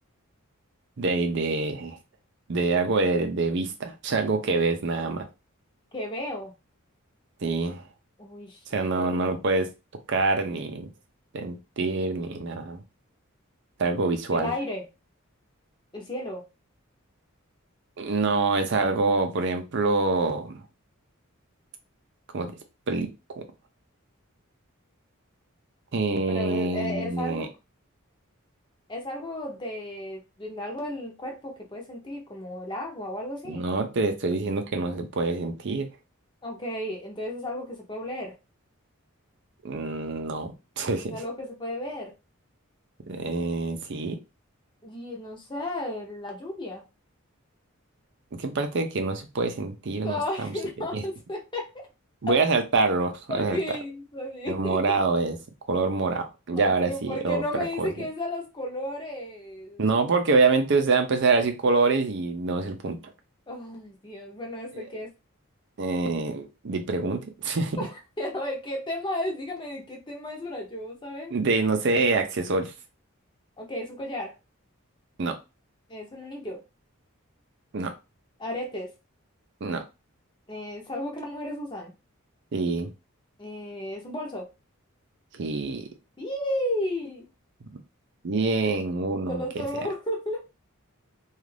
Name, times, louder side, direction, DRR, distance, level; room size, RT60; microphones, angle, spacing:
voice 1, 1.0-2.0 2.5-5.2 7.4-7.9 8.7-9.7 10.1-10.9 11.3-12.8 13.8-14.5 18.0-20.6 22.3-22.6 22.9-23.1 23.4-23.5 25.9-27.5 33.4-35.9 39.6-41.2 43.1-44.2 48.3-50.5 50.9-51.0 52.2-53.6 54.5-55.4 55.7-57.4 57.8-58.1 59.8-63.0 64.7-64.9 65.8-67.8 71.3-72.7 75.2-75.3 77.7-77.9 79.6-79.8 82.5-82.9 85.3-85.9 88.2-89.7, right 3 dB, 55° right, 5 dB, 0.5 m, -26 dB
voice 2, 5.9-6.5 8.2-9.2 14.3-14.8 15.9-16.4 26.3-27.5 28.9-33.6 36.4-38.3 41.1-42.1 44.8-46.9 50.0-51.9 52.3-52.4 53.3-55.0 56.5-59.8 63.5-65.1 67.8-71.3 73.6-74.3 75.9-76.6 78.4-78.9 80.5-81.9 83.4-84.5 86.2-87.2 89.3-90.5, left 1 dB, 20° left, 1 dB, 0.7 m, -33 dB
2.5 x 2.4 x 3.2 m, 0.27 s
head